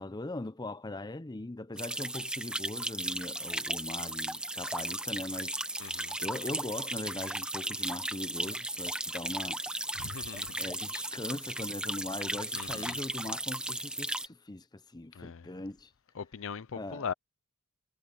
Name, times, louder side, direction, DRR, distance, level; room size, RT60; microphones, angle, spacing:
voice 1, 0.0-5.6 6.2-9.6 10.6-15.9 16.7-17.1, left 2 dB, 20° left, 0.6 m, -40 dB
sound 1, 1.8-14.3, right 1 dB, 5° right, 1.0 m, -36 dB
sound 2, 5.7-6.1 6.9-7.6 8.5-9.0 9.6-9.9 10.6-10.8 11.4-11.9 12.5-12.9 13.3-13.5, right 12 dB, 85° right, 6.2 m, -61 dB
voice 2, 5.8-6.1 9.9-10.6 12.5-13.0 15.1-15.5 16.2-17.1, left 6 dB, 60° left, 0.6 m, -40 dB
head